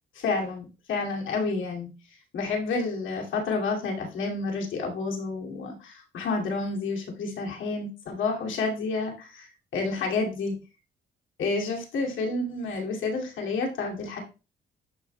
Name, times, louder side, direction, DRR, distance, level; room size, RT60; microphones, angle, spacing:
voice 1, 0.1-1.9 2.3-10.6 11.4-14.2, left 3 dB, 75° left, 0 dB, 2.5 m, -30 dB
11.5 x 5.1 x 2.2 m, 0.31 s
cardioid pair, 90°, 20 cm